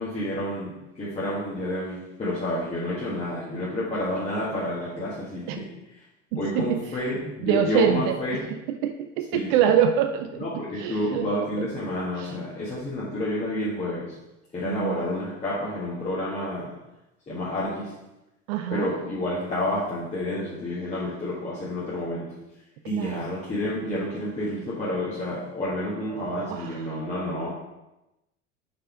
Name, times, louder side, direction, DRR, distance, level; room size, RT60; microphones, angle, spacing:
voice 1, 0.0-5.7 6.3-8.5 9.3-9.5 10.4-14.2 14.5-16.8 17.3-18.0 18.7-22.4 22.8-27.5, left 1 dB, 15° left, -9 dB, 1.5 m, -29 dB
voice 2, 6.3-6.8 7.4-8.2 8.8-10.5 10.8-11.3 12.2-12.3 14.7-15.0 18.5-18.9 22.8-23.3 26.1-26.8, right 9 dB, 40° right, 7 dB, 0.4 m, -25 dB
5.2 x 4.2 x 4.8 m, 0.96 s
figure-of-eight pair, 70°, 39 cm